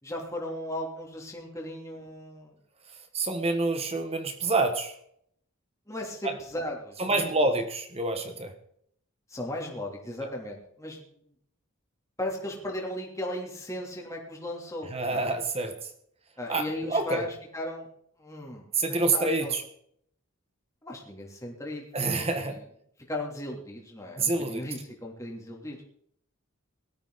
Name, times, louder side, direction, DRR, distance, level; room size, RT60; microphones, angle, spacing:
voice 1, 0.0-2.5 5.9-7.5 9.3-11.0 12.2-15.3 16.4-17.9 18.2-19.5 20.8-22.6 23.1-25.8, left 1 dB, 15° left, -1 dB, 3.2 m, -37 dB
voice 2, 3.1-5.0 6.2-6.3 7.0-8.5 10.2-10.3 14.9-15.9 16.5-17.2 18.7-19.6 21.9-22.6 24.2-24.6, right 3 dB, 25° right, 7 dB, 1.3 m, -27 dB
18.5 x 13.5 x 4.1 m, 0.67 s
head